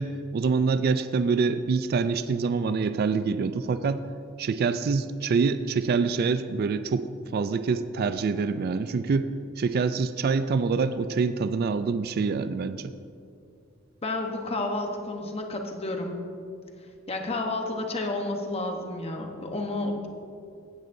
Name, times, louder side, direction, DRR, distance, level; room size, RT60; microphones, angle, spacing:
voice 1, 0.0-4.0 4.4-12.9, right 4 dB, 50° right, 12 dB, 0.3 m, -26 dB
voice 2, 14.0-16.2 17.1-20.1, left 2 dB, 30° left, 3 dB, 1.0 m, -31 dB
16.5 x 9.3 x 2.7 m, 2.4 s
head